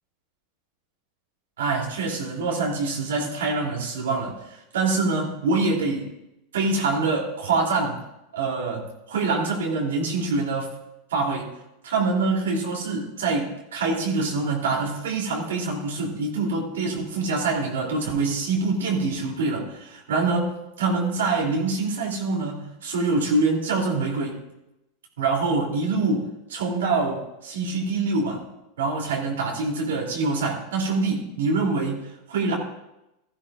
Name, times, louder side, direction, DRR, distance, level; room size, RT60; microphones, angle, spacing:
voice 1, 1.6-6.1 6.5-8.0 8.3-10.7 11.1-11.5 11.8-24.4 25.2-28.4 28.8-32.6, right 3 dB, 80° right, -1 dB, 3.0 m, -25 dB
16.5 x 13.5 x 2.5 m, 0.90 s
hypercardioid pair, 95°, 0 cm